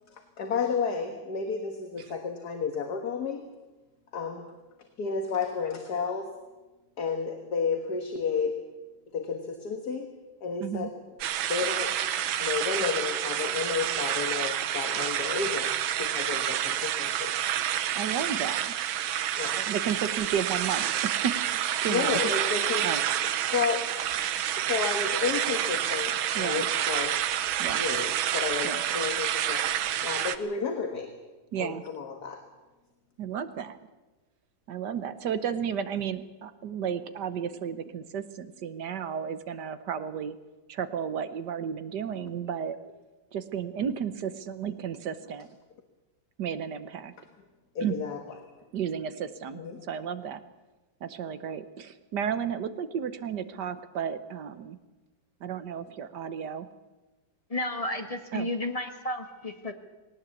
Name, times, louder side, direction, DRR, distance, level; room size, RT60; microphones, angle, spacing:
voice 1, 0.1-3.4 4.1-4.5 5.0-6.3 7.0-8.6 9.1-11.0 11.5-12.0 12.4-17.3 19.4-19.9 21.0-21.2 21.9-24.0 24.6-27.2 27.7-29.7 30.0-31.1 31.6-32.4 47.8-48.5 49.5-49.8, left 5 dB, 55° left, 5 dB, 1.9 m, -32 dB
voice 2, 10.6-10.9 17.9-18.7 19.6-21.4 21.7-22.2 22.8-23.0 25.6-25.7 26.3-26.7 27.6-27.9 28.6-28.8 31.5-31.8 33.2-33.8 34.7-40.4 40.7-42.8 43.3-45.5 46.4-47.1 47.8-48.0 48.7-49.6 49.9-50.4 51.0-54.8 55.4-56.7 58.3-58.5, right 8 dB, 60° right, 12 dB, 1.5 m, -33 dB
sound 1, 11.2-30.4, right 11 dB, 85° right, 1.7 m, -29 dB
voice 3, 57.5-59.7, left 1 dB, 20° left, 6 dB, 1.4 m, -32 dB
19.0 x 18.5 x 8.3 m, 1.1 s
omnidirectional pair, 2.2 m